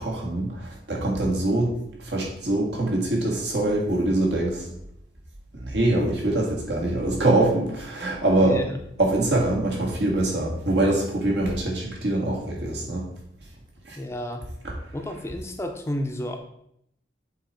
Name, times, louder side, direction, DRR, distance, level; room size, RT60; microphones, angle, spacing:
voice 1, 0.0-1.7 2.0-4.6 5.5-8.6 9.0-13.1 13.8-14.0 14.6-14.7, right 2 dB, 80° right, -1 dB, 1.6 m, -24 dB
voice 2, 8.4-8.7 14.0-14.4 14.9-16.4, left 1 dB, 15° left, 5 dB, 0.5 m, -31 dB
7.5 x 3.0 x 4.3 m, 0.74 s
head